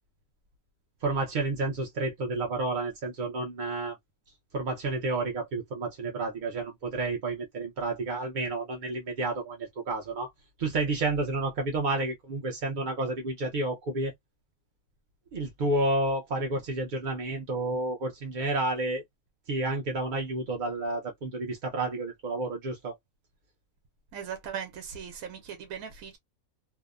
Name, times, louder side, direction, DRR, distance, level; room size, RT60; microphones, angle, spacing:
voice 1, 1.0-4.0 4.5-10.3 10.6-14.1 15.3-19.0 19.5-23.0, right 2 dB, 55° right, 0.5 m, -30 dB
voice 2, 24.1-26.2, right 8 dB, 85° right, 1.0 m, -39 dB
2.7 x 2.0 x 2.3 m
omnidirectional pair, 1.4 m